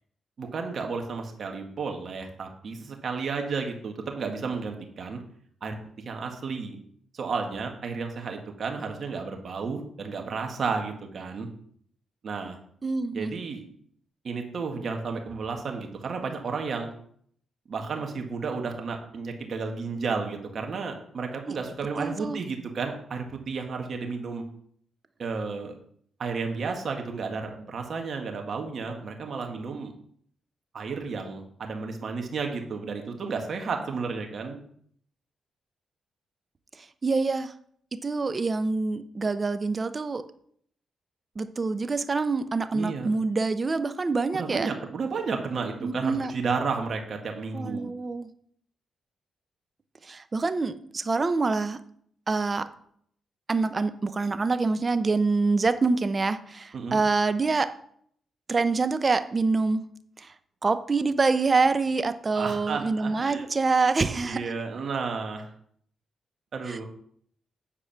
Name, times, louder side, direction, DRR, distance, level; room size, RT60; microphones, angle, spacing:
voice 1, 0.4-5.2 5.6-5.8 6.1-6.8 7.1-11.5 12.2-12.6 13.1-13.6 14.2-16.9 17.7-24.4 25.2-25.7 26.2-29.9 30.7-34.6 42.7-43.1 44.3-47.9 56.7-57.0 62.3-63.5 64.2-65.5 66.5-66.9, right 4 dB, 60° right, 3 dB, 1.8 m, -32 dB
voice 2, 12.8-13.3 22.0-22.4 37.0-37.5 38.0-40.2 41.4-44.7 45.8-46.3 47.5-48.3 50.1-51.8 52.3-52.7 53.5-57.7 58.5-59.8 60.2-60.3 60.6-64.4 66.7-66.8, right 4 dB, 40° right, 11 dB, 0.8 m, -26 dB
8.8 x 4.8 x 5.9 m, 0.63 s
supercardioid pair, 60°, 0 cm